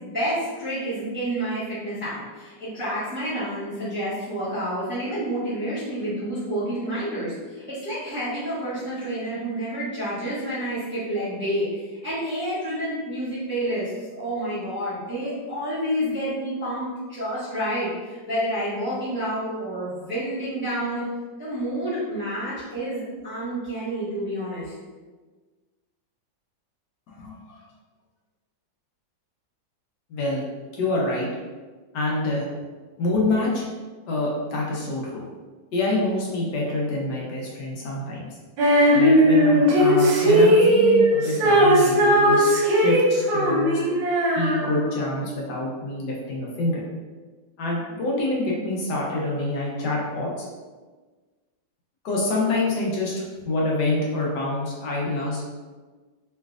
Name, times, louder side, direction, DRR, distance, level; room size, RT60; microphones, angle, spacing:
voice 1, 0.0-13.9 14.2-21.0 21.4-24.7, right 1 dB, 10° right, -11 dB, 0.7 m, -29 dB
voice 2, 27.1-27.6 30.1-30.4 30.7-31.3 31.9-32.5 33.0-33.6 34.1-35.2 35.7-38.3 38.9-43.8 44.4-46.9 47.6-50.5 52.0-53.1 53.5-55.4, left 2 dB, 70° left, -4 dB, 1.3 m, -26 dB
Female singing, 38.6-45.1, equal, 80° right, 1.5 m, -18 dB
3.2 x 3.1 x 2.3 m, 1.3 s
omnidirectional pair, 2.0 m